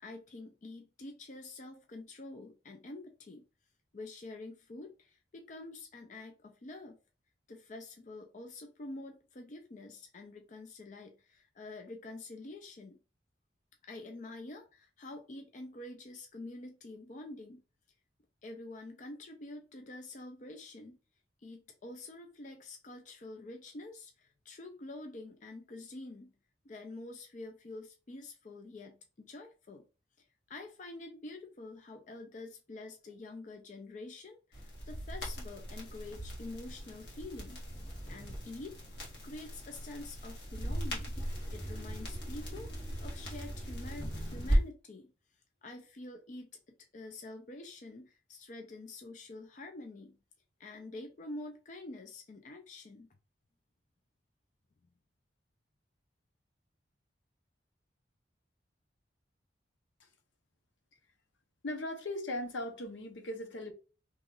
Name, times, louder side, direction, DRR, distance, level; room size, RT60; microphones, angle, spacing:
voice 1, 0.0-3.4 3.9-7.0 7.5-13.0 13.8-17.6 18.4-21.0 21.4-26.3 26.6-29.9 30.2-37.6 38.1-38.8 39.2-41.2 41.5-45.1 45.6-46.5 46.9-50.2 50.6-53.1, left 2 dB, 40° left, 0.4 m, -47 dB
sound 1, 34.5-44.6, equal, 65° left, 1.5 m, -37 dB
voice 2, 61.6-63.7, left 1 dB, 80° left, 0.8 m, -38 dB
3.0 x 2.3 x 3.7 m
head